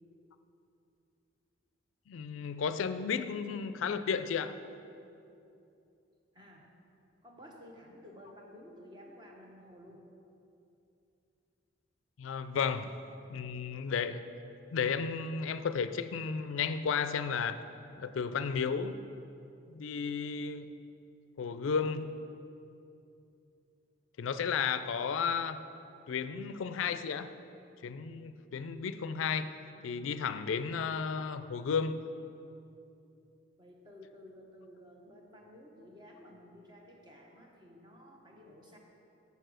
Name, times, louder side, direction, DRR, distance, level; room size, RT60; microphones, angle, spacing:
voice 1, 2.1-4.5 12.2-12.9 13.3-14.2 14.7-17.6 18.0-19.0 19.7-20.7 21.4-22.2 24.2-25.6 26.1-27.3 27.8-29.5 29.8-32.0, left 6 dB, 85° left, 11 dB, 0.4 m, -33 dB
voice 2, 6.3-6.7 7.2-10.0 33.6-38.8, left 1 dB, 25° right, 0 dB, 1.0 m, -53 dB
6.9 x 6.7 x 6.2 m, 2.7 s
head